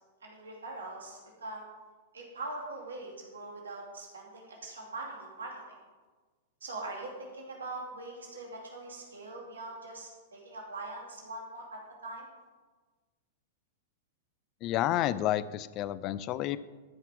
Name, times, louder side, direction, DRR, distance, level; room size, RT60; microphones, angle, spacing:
voice 1, 0.2-1.7 2.1-5.8 6.6-12.3, right 2 dB, 75° right, -1 dB, 2.5 m, -42 dB
voice 2, 14.6-16.6, left 13 dB, 40° left, 16 dB, 0.5 m, -30 dB
13.0 x 5.7 x 6.0 m, 1.4 s
figure-of-eight pair, 100°, 0 cm